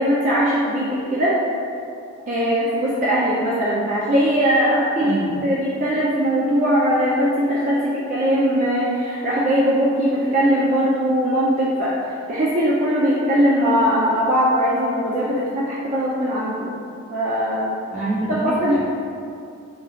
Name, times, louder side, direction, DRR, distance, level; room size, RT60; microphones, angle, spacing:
voice 1, 0.0-1.3 2.3-12.0 12.3-16.7 17.1-17.7 18.4-18.8, equal, 35° right, -7 dB, 0.4 m, -20 dB
voice 2, 5.0-5.4 17.9-18.8, right 2 dB, 5° right, -10 dB, 0.9 m, -26 dB
3.8 x 2.3 x 4.3 m, 2.5 s
head